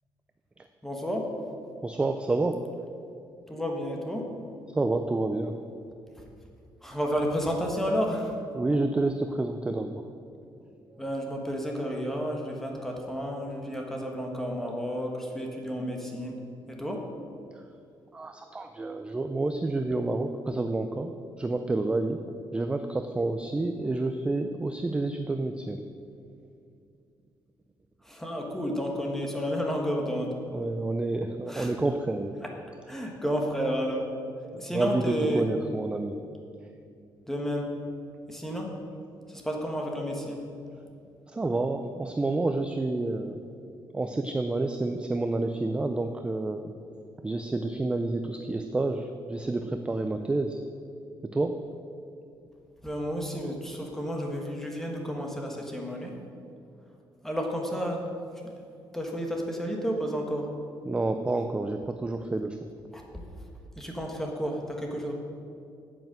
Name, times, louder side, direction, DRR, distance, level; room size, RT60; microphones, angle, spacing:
voice 1, 0.8-1.3 3.5-4.2 6.8-8.3 11.0-16.3 16.7-17.0 28.0-30.3 31.5-31.7 32.4-32.5 32.9-34.1 34.6-35.4 37.3-37.7 38.3-38.7 39.3-40.4 52.8-56.1 57.2-58.0 58.4-58.5 58.9-60.5 62.9-63.0 63.8-65.1, equal, 5° left, 0 dB, 1.5 m, -31 dB
voice 2, 1.8-2.6 4.7-5.6 8.5-10.1 10.9-11.0 18.1-22.2 22.5-25.9 30.5-32.4 34.5-36.2 41.3-43.4 43.9-46.7 47.2-50.6 51.3-51.6 60.8-62.7, right 2 dB, 10° right, 7 dB, 0.4 m, -29 dB
9.1 x 8.1 x 7.6 m, 2.5 s
cardioid pair, 170°, 8 cm